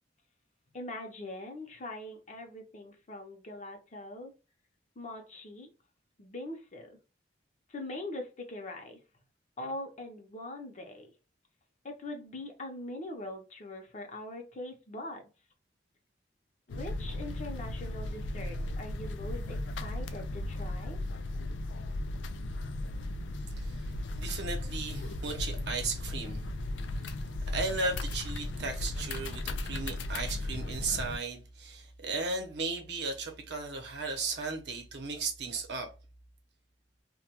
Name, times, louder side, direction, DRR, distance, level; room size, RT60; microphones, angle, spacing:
voice 1, 0.7-4.3 5.0-5.7 6.2-7.0 7.7-9.0 9.6-11.1 11.8-15.3 16.7-21.0, left 1 dB, 40° left, 0.6 m, -42 dB
sound 1, 16.7-31.2, left 2 dB, 90° left, 0.3 m, -36 dB
voice 2, 23.6-23.9 24.2-26.5 27.5-35.9, right 3 dB, 70° right, 0.7 m, -35 dB
2.2 x 2.2 x 2.8 m
head